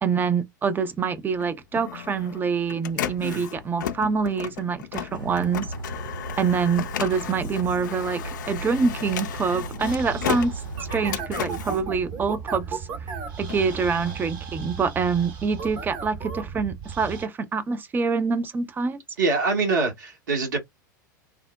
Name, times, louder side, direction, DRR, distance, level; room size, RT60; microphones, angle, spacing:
voice 1, 0.0-5.7 6.4-12.8 13.4-19.0, right 5 dB, 20° right, 0.5 m, -26 dB
Printer, 1.3-12.8 13.2-15.1, left 10 dB, 65° left, 0.4 m, -35 dB
sound 1, 5.1-11.0, right 3 dB, 85° right, 0.6 m, -36 dB
sound 2, 9.8-17.3, right 6 dB, 40° right, 0.9 m, -35 dB
voice 2, 19.2-20.6, right 3 dB, 70° right, 1.4 m, -24 dB
3.6 x 2.0 x 2.3 m
figure-of-eight pair, 90°, 11 cm